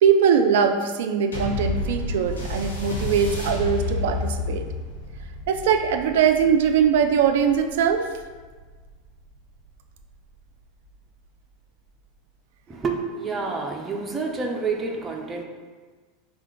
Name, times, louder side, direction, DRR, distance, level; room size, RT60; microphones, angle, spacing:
voice 1, 0.0-4.6 5.5-8.1, right 7 dB, 65° right, 6 dB, 0.3 m, -21 dB
sound 1, 1.3-10.1 10.9-11.0, left 2 dB, 85° left, 0.9 m, -31 dB
voice 2, 12.7-15.4, right 4 dB, 20° right, 1 dB, 0.6 m, -28 dB
3.6 x 2.5 x 4.4 m, 1.4 s
figure-of-eight pair, 85°, 0 cm